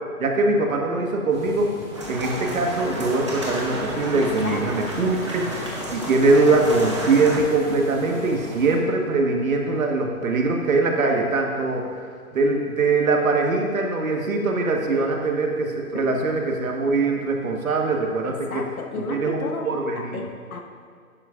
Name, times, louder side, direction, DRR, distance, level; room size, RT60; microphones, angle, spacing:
voice 1, 0.2-1.7 2.1-5.4 5.9-12.0 12.3-18.6 19.1-20.2, right 3 dB, 65° right, 2 dB, 1.5 m, -22 dB
sound 1, 1.3-8.7, left 1 dB, 10° left, 1.5 m, -37 dB
sound 2, 1.9-7.4, right 1 dB, 20° right, 0.7 m, -32 dB
voice 2, 4.1-4.6 14.9-15.1 15.9-16.1 18.2-20.6, left 3 dB, 75° left, 2 dB, 1.3 m, -34 dB
10.5 x 9.6 x 2.5 m, 2.1 s
hypercardioid pair, 180°, 44 cm